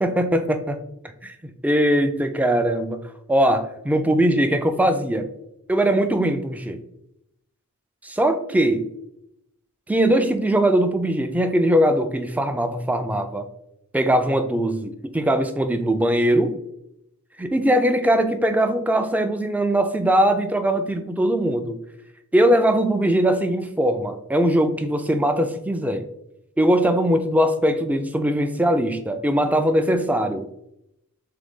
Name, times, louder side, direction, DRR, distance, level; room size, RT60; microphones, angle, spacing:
voice 1, 0.0-0.8 1.2-3.0 3.3-5.3 5.7-6.8 8.0-8.9 9.9-13.5 13.9-14.9 15.1-16.6 17.4-21.8 22.3-26.0 26.6-30.5, right 1 dB, 5° right, 8 dB, 0.3 m, -21 dB
3.8 x 3.3 x 3.6 m, 0.81 s
head